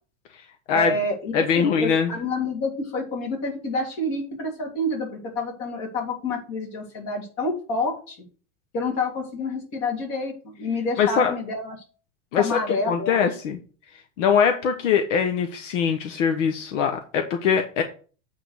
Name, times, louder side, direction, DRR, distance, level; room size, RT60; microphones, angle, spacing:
voice 1, 0.7-8.2 8.7-11.8 12.4-13.2, left 2 dB, 45° left, 1 dB, 3.2 m, -28 dB
voice 2, 1.3-2.1 11.0-11.3 12.3-13.6 14.2-17.8, left 7 dB, 80° left, 6 dB, 1.2 m, -22 dB
8.3 x 3.9 x 6.5 m, 0.39 s
supercardioid pair, 155°, 37 cm